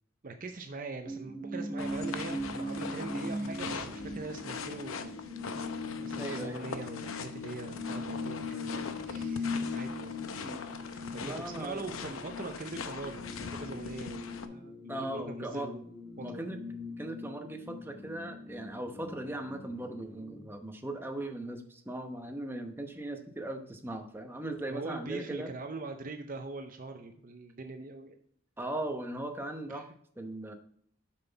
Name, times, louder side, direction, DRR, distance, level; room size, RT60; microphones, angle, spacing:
voice 1, 0.2-5.2 6.0-10.1 11.1-13.2 13.5-15.8 16.2-16.4 24.7-28.2 29.7-29.8, right 3 dB, 40° right, 6 dB, 0.6 m, -42 dB
sound 1, 1.0-20.4, left 2 dB, 20° left, 2.0 m, -40 dB
sound 2, 1.8-14.4, left 4 dB, 90° left, 0.7 m, -42 dB
voice 2, 6.2-6.7 10.4-10.7 11.2-11.9 14.9-15.7 16.2-16.6 17.0-25.5 28.6-29.8 30.2-30.5, right 1 dB, 10° right, 5 dB, 0.8 m, -38 dB
7.4 x 5.9 x 4.0 m, 0.62 s
head